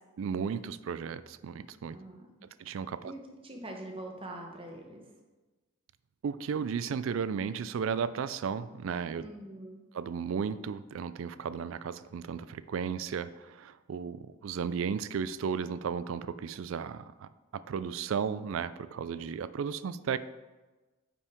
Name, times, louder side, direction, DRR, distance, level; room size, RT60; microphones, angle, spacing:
voice 1, 0.2-2.0 2.6-3.1 6.2-9.2 9.9-20.2, right 6 dB, 65° right, 15 dB, 0.3 m, -34 dB
voice 2, 1.9-2.3 3.0-5.1 9.2-9.8, right 1 dB, 25° right, 2 dB, 1.0 m, -44 dB
9.4 x 5.5 x 3.5 m, 1.2 s
head